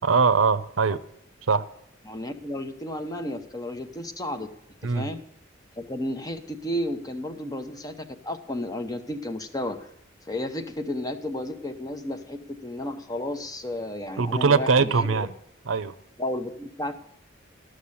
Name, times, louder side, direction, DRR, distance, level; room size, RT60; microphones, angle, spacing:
voice 1, 0.0-1.0 1.5-1.7 4.8-5.1 14.2-15.3 15.7-16.0, right 5 dB, 85° right, 13 dB, 0.6 m, -22 dB
voice 2, 2.1-4.5 4.8-5.2 5.8-9.9 10.3-15.3 16.2-17.0, left 1 dB, 20° left, 7 dB, 0.8 m, -32 dB
13.0 x 6.5 x 8.4 m, 0.74 s
head